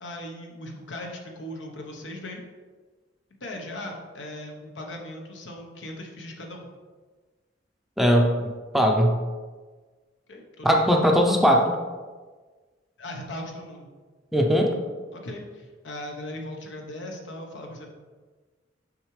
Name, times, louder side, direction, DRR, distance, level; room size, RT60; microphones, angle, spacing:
voice 1, 0.0-2.4 3.4-6.7 10.3-11.0 13.0-13.9 15.1-17.9, left 1 dB, 85° left, 1 dB, 1.1 m, -38 dB
voice 2, 8.0-9.2 10.6-11.8 14.3-14.7, equal, ahead, 1 dB, 0.5 m, -20 dB
6.2 x 5.9 x 3.3 m, 1.4 s
head